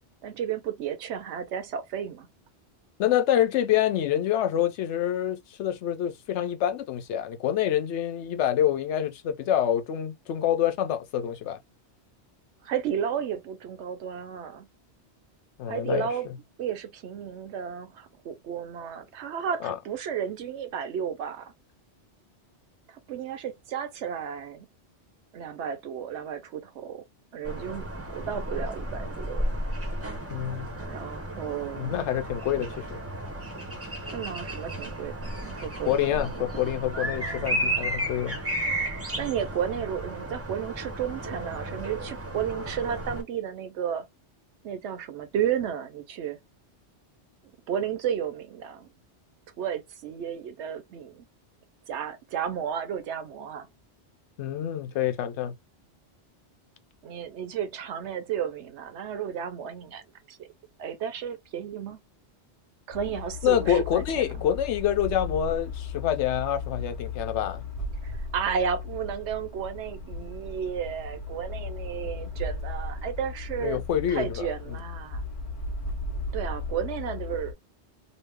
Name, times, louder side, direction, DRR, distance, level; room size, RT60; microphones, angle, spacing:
voice 1, 0.2-2.3 12.6-14.7 15.7-16.3 16.6-21.5 22.9-24.7 25.3-27.0 27.3-29.4 30.8-32.0 34.1-36.7 36.9-37.9 39.2-44.0 44.6-46.4 47.7-48.9 49.6-51.3 51.9-53.7 57.0-60.4 60.8-62.0 62.9-64.3 68.0-73.8 74.1-75.2 76.3-77.5, right 8 dB, 75° right, 0.9 m, -33 dB
voice 2, 3.0-11.6 15.6-16.4 19.6-19.8 30.3-30.7 31.8-33.0 35.8-38.4 54.4-55.6 63.4-67.7 73.6-74.5, left 10 dB, 80° left, 0.9 m, -27 dB
sound 1, 27.4-43.2, right 1 dB, 15° right, 0.6 m, -33 dB
sound 2, 62.9-77.5, left 3 dB, 30° left, 1.2 m, -36 dB
3.0 x 2.0 x 3.2 m
omnidirectional pair, 1.2 m